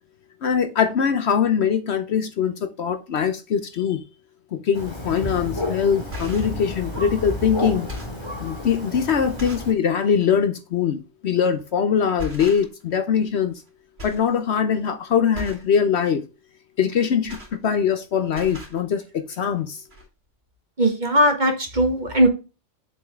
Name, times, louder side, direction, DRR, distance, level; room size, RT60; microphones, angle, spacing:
voice 1, 0.4-4.0 4.5-7.9 8.4-13.5 14.0-16.3 16.8-19.8, left 7 dB, 65° left, 1.0 m, -22 dB
Thunder, 4.7-9.7, left 1 dB, 20° left, 2.1 m, -31 dB
sound 1, 5.2-5.4 5.9-6.6 7.3-7.4 7.7-8.3 8.9-9.0 9.4-9.8 10.2-10.3 11.5-11.8 12.2-12.9 13.2-13.7 14.0-14.3 14.6-14.9 15.3-15.7 16.9-18.0 18.3-18.8 19.6-19.7 19.9-20.1, left 1 dB, 55° right, 2.9 m, -37 dB
voice 2, 20.8-22.3, equal, 40° right, 1.7 m, -19 dB
7.0 x 5.3 x 3.6 m
omnidirectional pair, 1.3 m